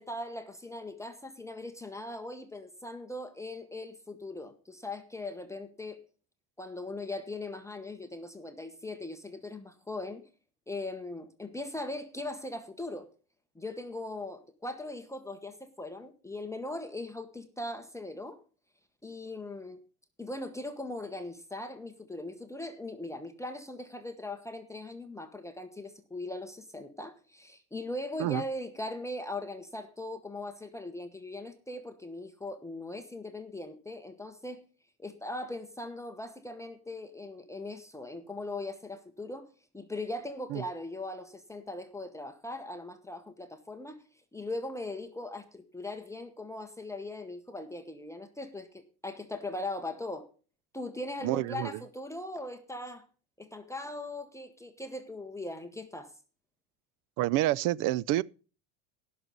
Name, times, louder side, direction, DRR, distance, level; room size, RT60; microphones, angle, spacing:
voice 1, 0.0-6.0 6.6-10.2 10.7-13.1 13.5-18.4 19.0-19.8 20.2-34.6 35.0-44.0 44.3-50.3 50.7-53.0 53.4-56.1, left 2 dB, 5° left, 1.0 m, -40 dB
voice 2, 51.2-51.7 57.2-58.2, right 16 dB, 50° right, 0.5 m, -28 dB
16.5 x 6.4 x 5.3 m
supercardioid pair, 120°, 41 cm